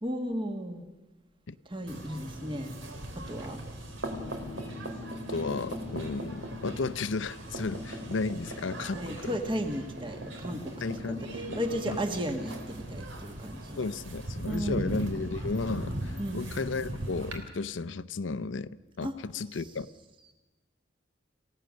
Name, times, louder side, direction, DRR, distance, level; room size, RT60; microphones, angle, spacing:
voice 1, 0.0-0.8 1.6-2.7 3.1-3.6 8.9-10.7 11.3-13.8 14.4-15.0 16.2-16.4 19.0-19.1, equal, 25° right, 5 dB, 1.7 m, -34 dB
sound 1, 1.9-17.4, right 1 dB, 80° right, 3.1 m, -39 dB
voice 2, 5.3-9.4 10.8-11.6 11.9-12.0 13.8-19.9, left 4 dB, 80° left, 14 dB, 0.7 m, -34 dB
28.0 x 16.5 x 6.4 m, 1.1 s
head